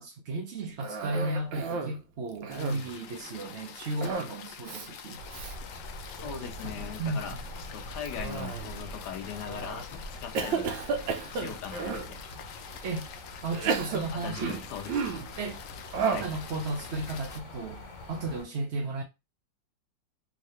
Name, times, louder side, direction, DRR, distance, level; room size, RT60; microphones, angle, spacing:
voice 1, 0.0-5.2 6.4-7.4 12.8-13.1 13.4-14.6 15.4-15.6 15.9-17.8 18.1-19.0, right 2 dB, 55° right, 0.7 m, -34 dB
Cough, 0.8-2.0 2.3-3.0 4.0-4.4 4.6-4.9 5.3-5.5 6.1-6.5 8.1-8.8 9.4-9.8 10.3-12.1 12.8-12.9 13.5-15.3 15.9-16.4, right 5 dB, 85° right, 1.4 m, -33 dB
sound 1, 2.5-17.4, left 7 dB, 90° left, 0.7 m, -47 dB
sound 2, 5.2-18.4, left 1 dB, 50° left, 1.0 m, -44 dB
voice 2, 6.2-7.4 7.7-10.7 11.3-12.2 14.1-15.0 16.1-16.3, left 8 dB, 70° left, 1.1 m, -40 dB
3.7 x 2.8 x 3.2 m
omnidirectional pair, 2.0 m